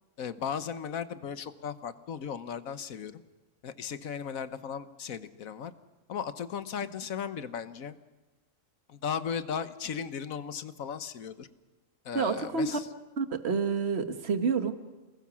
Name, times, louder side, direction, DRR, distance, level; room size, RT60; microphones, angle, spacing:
voice 1, 0.2-3.2 3.6-5.7 6.1-7.9 8.9-11.5 12.0-12.9, left 7 dB, 85° left, 12 dB, 1.5 m, -36 dB
voice 2, 12.1-12.8 13.2-14.7, right 5 dB, 50° right, 9 dB, 1.6 m, -28 dB
29.0 x 19.5 x 6.2 m, 1.2 s
omnidirectional pair, 1.4 m